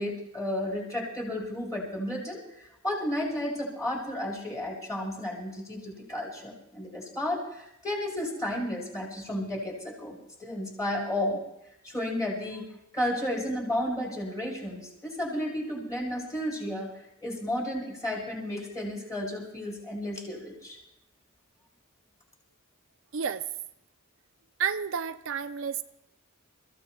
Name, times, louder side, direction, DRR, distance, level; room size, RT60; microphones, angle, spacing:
voice 1, 0.0-11.4 11.8-12.7 12.9-20.8, left 1 dB, 15° left, -3 dB, 4.6 m, -33 dB
voice 2, 23.1-23.5 24.6-25.8, right 7 dB, 65° right, 10 dB, 0.4 m, -30 dB
29.0 x 15.0 x 2.3 m, 0.84 s
head